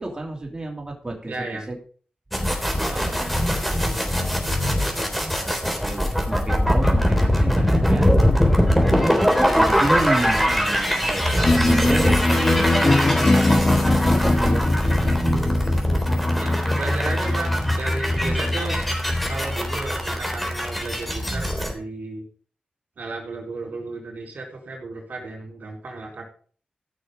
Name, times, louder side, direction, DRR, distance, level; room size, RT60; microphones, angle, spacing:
voice 1, 0.0-1.3 1.7-1.8 2.6-3.4 5.4-8.1 8.8-9.2 9.5-15.1 15.5-16.1, right 2 dB, 25° right, 0 dB, 3.0 m, -31 dB
voice 2, 1.3-1.7 2.8-4.3 8.9-9.8 16.4-18.8 19.3-22.2 23.0-26.2, right 3 dB, 75° right, 1 dB, 4.2 m, -34 dB
sound 1, 2.3-21.7, equal, 5° left, 3.6 m, -22 dB
sound 2, 11.4-21.5, left 2 dB, 45° left, 3.1 m, -22 dB
15.0 x 6.3 x 5.1 m, 0.43 s
wide cardioid pair, 70°, 3 cm